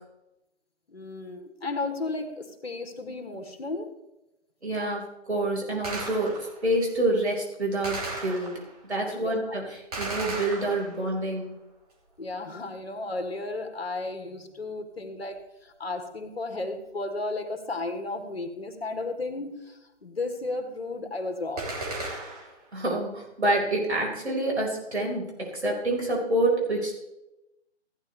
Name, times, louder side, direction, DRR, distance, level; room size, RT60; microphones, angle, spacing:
voice 1, 0.9-3.9 9.1-9.6 12.2-21.7, left 2 dB, 60° left, 6 dB, 1.6 m, -34 dB
voice 2, 4.6-11.5 22.7-27.0, right 1 dB, 70° right, -1 dB, 4.8 m, -27 dB
Gunshot gunfire, 5.8-6.7 7.8-8.8 9.9-11.2 21.6-22.6, right 2 dB, 35° right, 2.7 m, -35 dB
15.0 x 9.5 x 3.3 m, 0.92 s
figure-of-eight pair, 150°, 34 cm